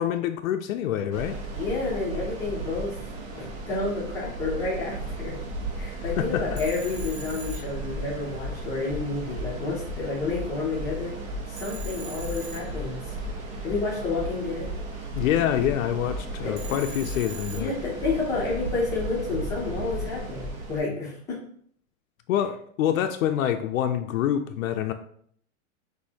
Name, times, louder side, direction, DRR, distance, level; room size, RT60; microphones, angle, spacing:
voice 1, 0.0-1.4 6.2-6.6 15.1-17.7 22.3-24.9, left 10 dB, 75° left, 6 dB, 0.5 m, -26 dB
sound 1, 1.1-20.8, right 3 dB, 70° right, 1.5 m, -36 dB
voice 2, 1.6-3.0 3.3-5.4 5.7-11.1 11.5-13.1 13.6-14.7 16.4-16.8 17.6-21.4, left 3 dB, 10° left, -4 dB, 0.5 m, -30 dB
sound 2, 5.5-5.6 6.0-6.1 6.4-6.6 6.9-7.1 7.4-7.6 7.9-8.0 8.4-8.5 8.8-9.0 9.3-9.5 9.8-10.0 10.3-10.4 10.8-10.9 11.2-11.4 11.7-11.9 12.2-12.4 12.7-12.8 13.2-13.3 13.6-13.8 14.1-14.3 14.6-14.8 15.1-15.2 15.6-15.7 16.0-16.2 16.5-16.7 17.0-17.2 17.5-17.6 18.0-18.1 18.4-18.6 18.9-19.1 19.4-19.6 19.9-20.0 20.4-20.5, left 4 dB, 15° right, 1.6 m, -36 dB
Telephone, 6.6-8.5 11.6-13.4 16.6-18.2, right 5 dB, 55° right, 1.0 m, -43 dB
6.3 x 2.7 x 2.7 m, 0.62 s
supercardioid pair, 165°, 40 cm